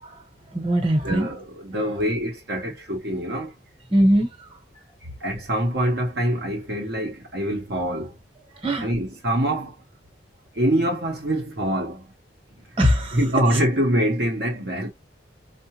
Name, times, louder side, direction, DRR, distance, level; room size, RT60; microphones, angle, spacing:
voice 1, 0.5-1.3 3.9-4.3 8.6-8.9 12.8-13.2, equal, 30° right, 1.2 m, -20 dB
voice 2, 1.0-3.5 5.2-8.1 8.8-9.7 10.6-12.0 13.1-14.9, right 1 dB, 55° right, 0.9 m, -24 dB
4.6 x 2.4 x 2.9 m
head